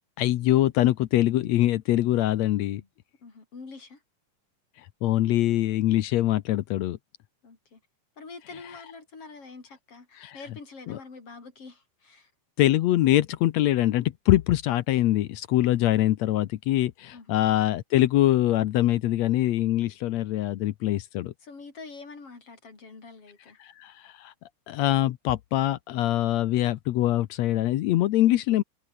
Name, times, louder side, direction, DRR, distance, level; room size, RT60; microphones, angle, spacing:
voice 1, 0.2-2.8 5.0-7.0 10.2-10.4 10.9-11.0 12.6-21.3 23.6-24.3 24.7-28.6, left 14 dB, 70° left, 1.8 m, -23 dB
voice 2, 3.2-4.0 7.4-7.8 8.2-12.3 17.1-17.4 21.4-23.6, left 4 dB, 45° left, 5.1 m, -45 dB
omnidirectional pair, 3.6 m